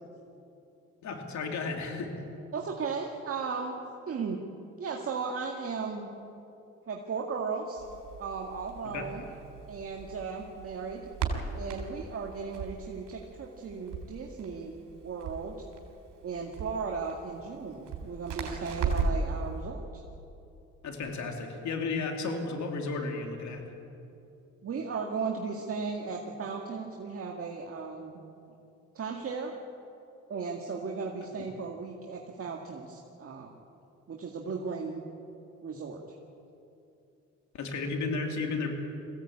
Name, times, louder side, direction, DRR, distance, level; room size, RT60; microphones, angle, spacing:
voice 1, 1.0-2.1 8.8-9.0 20.8-23.7 37.5-38.7, left 4 dB, 70° left, 3 dB, 3.0 m, -33 dB
voice 2, 2.5-3.8 4.1-4.5 4.8-6.1 6.9-7.8 8.2-9.2 9.7-11.1 11.5-15.6 16.2-19.8 24.6-28.2 28.9-29.5 30.3-33.5 34.1-35.0 35.6-36.0, right 5 dB, 50° right, 0 dB, 2.0 m, -36 dB
Crackle, 7.8-19.3, right 5 dB, 85° right, 3.7 m, -37 dB
22.0 x 16.0 x 8.8 m, 2.8 s
cardioid pair, 90°, 30 cm